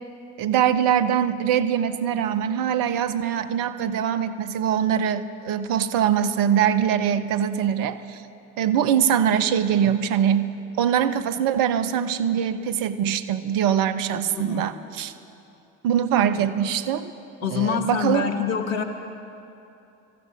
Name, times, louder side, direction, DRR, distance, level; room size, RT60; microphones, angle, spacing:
voice 1, 0.4-8.2 8.6-10.5 10.8-15.1 15.8-17.1 17.5-18.3, right 9 dB, 55° right, 11 dB, 0.7 m, -23 dB
voice 2, 14.1-14.7 16.3-16.4 17.4-18.8, left 7 dB, 75° left, 6 dB, 1.2 m, -26 dB
17.5 x 14.0 x 4.9 m, 2.8 s
figure-of-eight pair, 50°, 41 cm